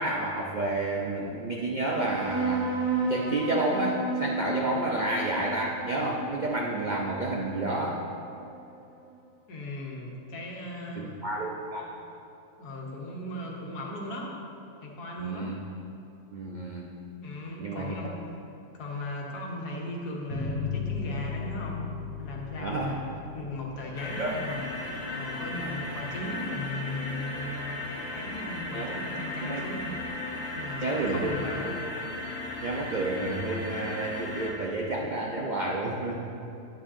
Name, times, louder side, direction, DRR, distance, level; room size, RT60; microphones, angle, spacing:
voice 1, 0.0-2.7 3.1-8.0 11.0-12.0 15.2-15.5 16.3-16.9 17.6-18.1 22.5-22.9 24.2-24.3 28.7-28.9 29.4-29.7 30.8-31.8 32.6-36.2, right 2 dB, 75° right, -2 dB, 0.4 m, -30 dB
sound 1, 1.9-8.8, right 3 dB, 50° right, 1.8 m, -33 dB
voice 2, 9.5-11.2 12.6-14.4 14.8-15.5 17.2-18.2 18.7-21.9 22.2-30.0 30.5-31.8, left 1 dB, 85° left, -2 dB, 1.6 m, -37 dB
sound 2, 20.3-25.4, left 5 dB, 25° left, 1.4 m, -37 dB
sound 3, 23.9-34.5, left 2 dB, 65° left, 1.9 m, -36 dB
9.7 x 9.0 x 2.5 m, 2.7 s
omnidirectional pair, 1.7 m